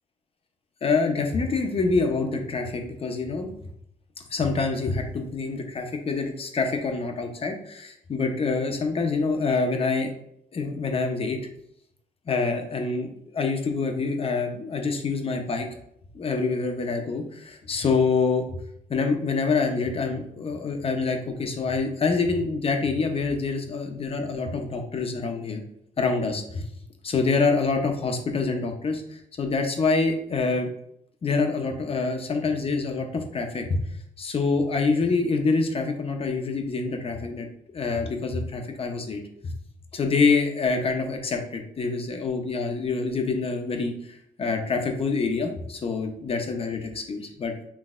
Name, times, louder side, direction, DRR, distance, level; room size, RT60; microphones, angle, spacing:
voice 1, 0.8-3.5 4.3-10.1 10.5-11.4 12.3-15.7 16.1-18.5 18.9-25.6 26.0-26.7 27.0-30.7 31.2-33.8 34.2-37.5 37.7-39.5 39.9-47.5, left 4 dB, 40° left, 4 dB, 0.8 m, -26 dB
6.1 x 3.2 x 2.5 m, 0.73 s
cardioid pair, 110°, 15 cm